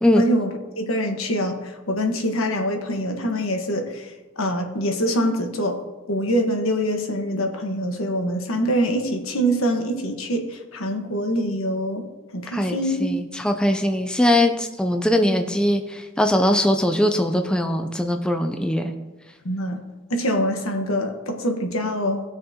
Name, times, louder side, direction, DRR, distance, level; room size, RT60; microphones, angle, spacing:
voice 1, 0.2-5.8 6.1-12.0 12.3-13.1 19.4-19.8 20.1-22.2, equal, 85° left, 4 dB, 1.4 m, -24 dB
voice 2, 12.5-18.9, left 1 dB, 5° left, 5 dB, 0.5 m, -21 dB
18.0 x 6.5 x 2.9 m, 1.2 s
head